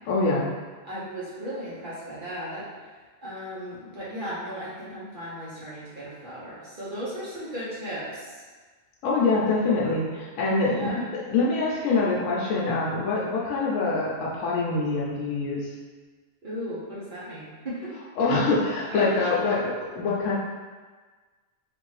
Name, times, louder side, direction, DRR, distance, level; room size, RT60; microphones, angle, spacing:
voice 1, 0.1-0.5 9.0-15.7 18.2-20.3, left 3 dB, 80° left, -5 dB, 1.0 m, -25 dB
voice 2, 0.8-2.7 3.2-8.3 10.6-11.0 16.4-17.9 18.9-19.1, equal, 45° right, -8 dB, 0.9 m, -36 dB
3.3 x 2.5 x 3.1 m, 1.4 s
omnidirectional pair, 1.3 m